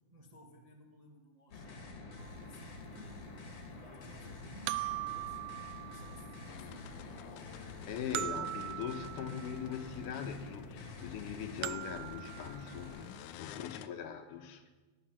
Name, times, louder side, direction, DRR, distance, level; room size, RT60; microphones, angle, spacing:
voice 1, 0.1-2.0 2.4-3.4 3.7-8.7 13.5-14.0, right 1 dB, 70° right, -1 dB, 0.3 m, -58 dB
sound 1, 1.5-13.0, left 3 dB, 45° left, 3.0 m, -48 dB
sound 2, 2.2-2.3 4.7-6.5 8.1-9.8 11.6-13.1, right 15 dB, 90° right, 1.7 m, -40 dB
sound 3, 6.5-13.9, left 12 dB, 85° left, 1.7 m, -52 dB
voice 2, 7.9-14.7, left 8 dB, 70° left, 6 dB, 2.4 m, -41 dB
19.0 x 12.0 x 5.8 m, 1.2 s
omnidirectional pair, 4.1 m